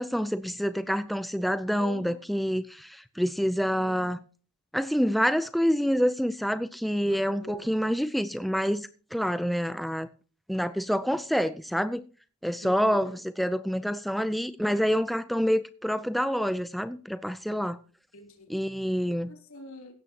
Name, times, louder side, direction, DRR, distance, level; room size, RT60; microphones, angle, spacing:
voice 1, 0.0-4.2 4.7-10.1 10.5-12.0 12.4-17.8 18.5-19.3, equal, ahead, 0.5 m, -27 dB
voice 2, 1.8-2.2 3.7-4.1 7.1-7.7 12.6-13.1 18.1-18.5 19.3-19.9, left 2 dB, 70° left, 3.3 m, -44 dB
16.5 x 13.5 x 2.9 m
head